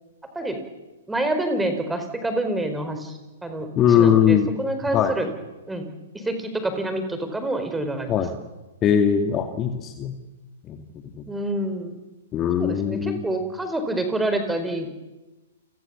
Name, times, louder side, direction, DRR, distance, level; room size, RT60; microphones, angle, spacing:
voice 1, 1.1-3.0 3.4-3.7 4.0-5.3 5.7-5.9 6.3-8.1 11.3-11.9 12.6-14.9, right 1 dB, 5° right, 7 dB, 4.6 m, -27 dB
voice 2, 3.8-4.6 4.9-5.2 8.1-8.4 8.8-10.1 10.7-10.8 11.1-11.2 12.3-13.2, left 8 dB, 25° left, 5 dB, 2.2 m, -20 dB
30.0 x 25.0 x 7.2 m, 1.1 s
figure-of-eight pair, 115°, 0 cm